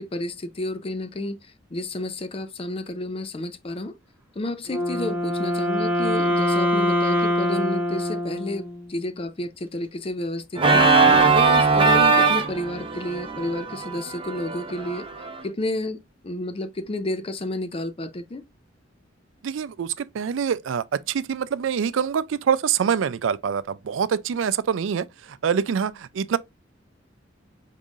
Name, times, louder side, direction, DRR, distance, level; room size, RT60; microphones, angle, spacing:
voice 1, 0.0-1.4 1.7-4.0 4.4-15.1 15.4-18.4, left 1 dB, 30° left, 0.5 m, -31 dB
Wind instrument woodwind instrument, 4.6-8.9, left 1 dB, 10° right, 1.1 m, -24 dB
Organ, 10.6-15.4, right 4 dB, 30° right, 0.8 m, -20 dB
voice 2, 19.4-26.4, right 7 dB, 75° right, 0.4 m, -25 dB
5.4 x 3.7 x 2.4 m
head